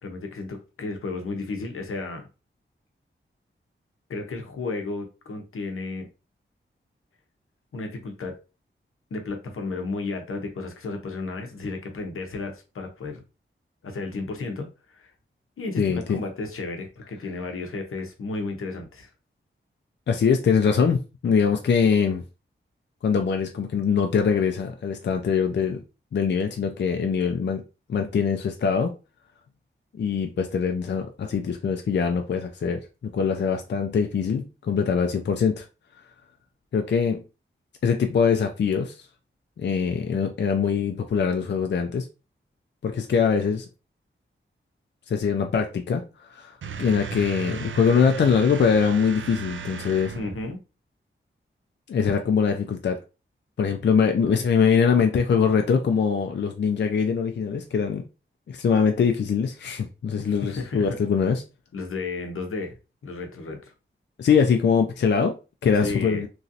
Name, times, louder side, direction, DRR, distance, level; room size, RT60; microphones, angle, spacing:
voice 1, 0.0-2.3 4.1-6.1 7.7-8.4 9.1-13.2 13.8-15.1 15.6-19.1 50.1-50.6 60.2-61.0 61.7-62.8 63.0-63.7 65.8-66.3, left 3 dB, 85° left, 0.7 m, -33 dB
voice 2, 15.8-16.2 20.1-22.2 23.0-25.8 26.1-27.6 27.9-28.9 30.0-32.9 33.1-35.7 36.7-37.2 37.8-39.0 39.6-42.1 42.8-43.7 45.1-50.1 51.9-53.0 53.6-58.0 58.5-61.4 64.2-65.4 65.6-66.3, left 6 dB, 55° left, 0.4 m, -23 dB
sound 1, 46.6-50.5, right 7 dB, 70° right, 0.4 m, -36 dB
3.0 x 2.7 x 2.5 m
wide cardioid pair, 75°, 21 cm